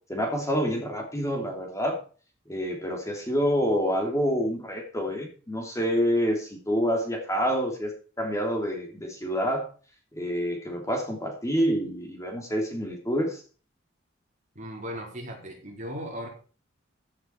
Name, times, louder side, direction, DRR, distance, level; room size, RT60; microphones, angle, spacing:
voice 1, 0.1-2.0 2.5-9.7 10.1-13.4, equal, 15° left, 2 dB, 2.9 m, -27 dB
voice 2, 14.5-16.3, equal, 40° right, 1 dB, 4.1 m, -37 dB
15.5 x 7.9 x 4.5 m, 0.38 s
head